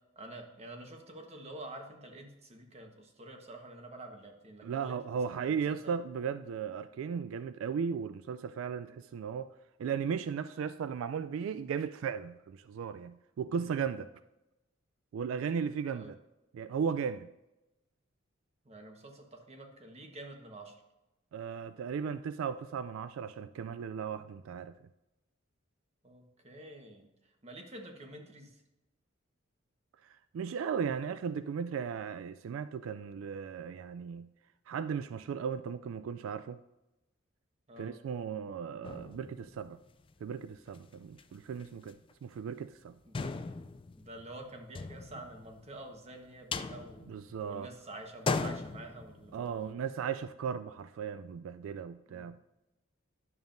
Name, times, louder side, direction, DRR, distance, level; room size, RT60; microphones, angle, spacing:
voice 1, 0.2-5.0 5.3-5.9 13.5-13.7 15.9-16.1 18.6-20.7 26.0-27.1 27.4-28.5 37.7-38.0 43.1-43.3 44.0-47.0 47.5-49.7 52.1-52.3, right 1 dB, 35° right, 3 dB, 1.2 m, -48 dB
voice 2, 4.6-9.5 9.8-14.1 15.1-16.2 16.5-17.3 21.3-24.7 30.3-34.3 34.7-36.6 37.8-39.8 40.2-42.0 42.2-42.9 47.1-47.7 49.3-52.4, right 6 dB, 85° right, 13 dB, 0.3 m, -36 dB
sound 1, 38.8-40.2 40.7-40.8 41.0-41.2 41.6-42.1 42.4-42.5 43.1-45.9 46.3-47.7 48.0-49.7, left 4 dB, 25° left, 0.3 m, -38 dB
11.0 x 7.0 x 2.6 m, 0.97 s
head